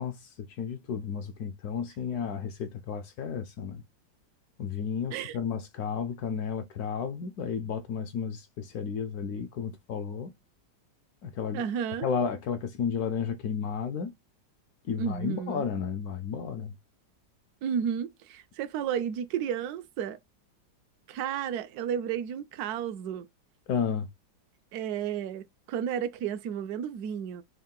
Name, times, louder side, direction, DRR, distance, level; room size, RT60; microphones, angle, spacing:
voice 1, 0.0-3.8 4.6-10.3 11.2-11.6 12.0-14.1 14.9-16.7 23.7-24.1, left 6 dB, 70° left, 0.9 m, -32 dB
voice 2, 11.5-12.1 15.0-15.6 17.6-20.2 21.1-23.3 24.7-27.4, right 8 dB, 70° right, 1.0 m, -32 dB
3.6 x 2.4 x 3.7 m
omnidirectional pair, 2.0 m